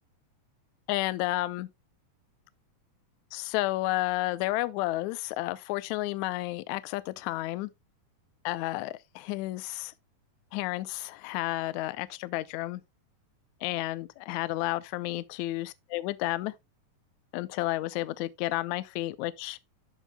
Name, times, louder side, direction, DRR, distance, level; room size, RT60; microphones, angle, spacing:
voice 1, 0.9-1.7 3.3-7.7 8.4-9.9 10.5-12.8 13.6-16.5 17.3-19.6, left 17 dB, 85° left, 1.6 m, -31 dB
13.0 x 5.5 x 2.2 m
omnidirectional pair, 4.0 m